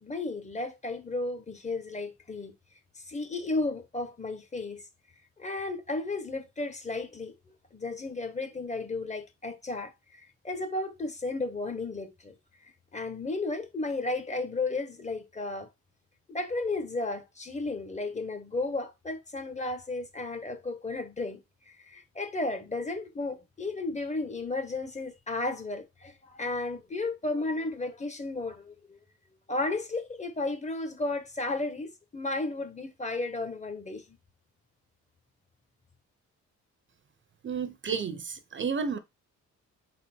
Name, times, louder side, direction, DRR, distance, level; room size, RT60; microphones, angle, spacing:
voice 1, 0.0-2.5 3.1-4.8 5.4-7.3 7.7-12.3 12.9-15.7 16.3-21.4 21.9-29.0 29.5-34.0, left 2 dB, 25° left, 1.3 m, -33 dB
voice 2, 37.4-39.0, right 6 dB, 40° right, 0.8 m, -31 dB
5.2 x 4.2 x 4.4 m
cardioid pair, 90°, 30 cm